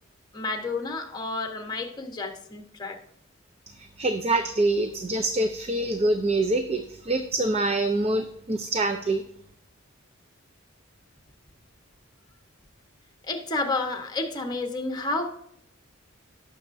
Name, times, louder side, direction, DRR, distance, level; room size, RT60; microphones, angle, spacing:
voice 1, 0.3-3.0 13.3-15.3, left 3 dB, 20° left, 4 dB, 1.2 m, -30 dB
voice 2, 3.8-9.2, right 2 dB, 30° right, 6 dB, 0.5 m, -25 dB
17.5 x 6.4 x 2.7 m, 0.72 s
head